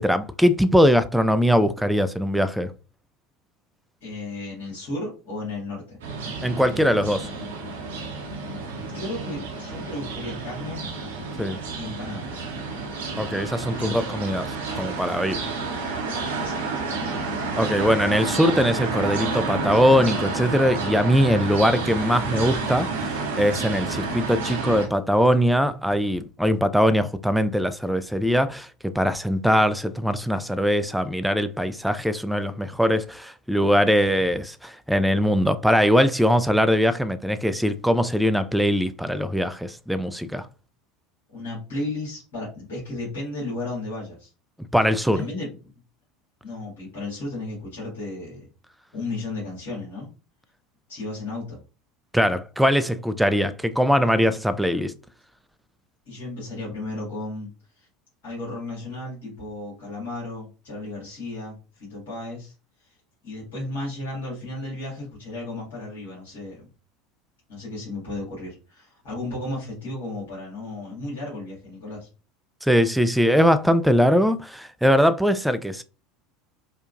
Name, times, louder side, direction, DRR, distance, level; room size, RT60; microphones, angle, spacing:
voice 1, 0.0-2.7 6.4-7.3 11.4-11.6 13.2-15.4 17.6-40.5 44.7-45.2 52.1-54.9 72.6-75.8, equal, ahead, 0.4 m, -21 dB
voice 2, 4.0-6.0 8.8-10.8 11.7-12.4 13.7-14.2 16.4-16.6 41.3-44.3 45.1-45.7 46.4-48.5 48.9-50.1 50.9-51.6 56.1-57.5 57.8-57.9 58.2-62.5 62.8-62.9 63.2-66.7 67.5-72.1, left 2 dB, 65° left, 2.0 m, -34 dB
sound 1, 6.0-24.9, right 3 dB, 75° right, 0.9 m, -30 dB
4.4 x 2.4 x 2.5 m
figure-of-eight pair, 75°, 0 cm